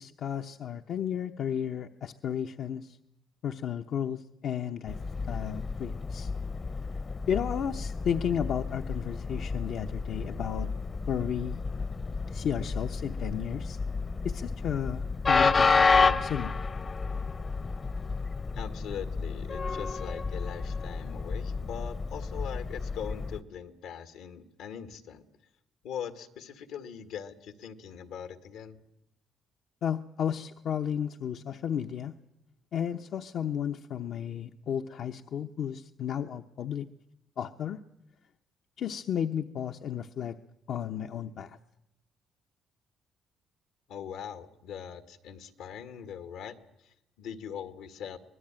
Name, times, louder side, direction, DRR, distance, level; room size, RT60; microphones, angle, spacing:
voice 1, 0.0-3.0 3.4-5.0 5.3-6.3 7.3-10.7 11.1-11.6 12.3-13.8 14.2-16.5 29.8-32.1 32.7-36.9 37.4-37.8 38.8-40.4 40.7-41.6, left 8 dB, 65° left, 6 dB, 0.8 m, -33 dB
Train, 4.9-23.4, left 4 dB, 35° left, 0.8 m, -30 dB
voice 2, 18.5-25.3 25.8-28.8 43.9-46.6 46.8-48.2, left 8 dB, 85° left, 9 dB, 1.9 m, -41 dB
25.0 x 20.0 x 9.0 m, 0.84 s
cardioid pair, 85°, 0 cm